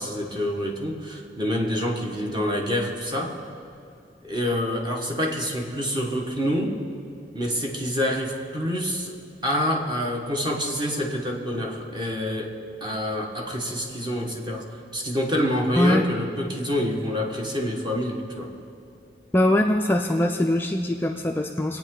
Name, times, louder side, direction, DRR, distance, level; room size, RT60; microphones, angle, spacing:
voice 1, 0.0-3.4 4.2-6.7 7.3-9.1 9.4-18.5, equal, 25° right, 0 dB, 1.5 m, -27 dB
voice 2, 15.8-16.1 19.3-21.8, left 1 dB, 10° left, 2 dB, 0.4 m, -22 dB
24.0 x 8.9 x 3.9 m, 2.4 s
head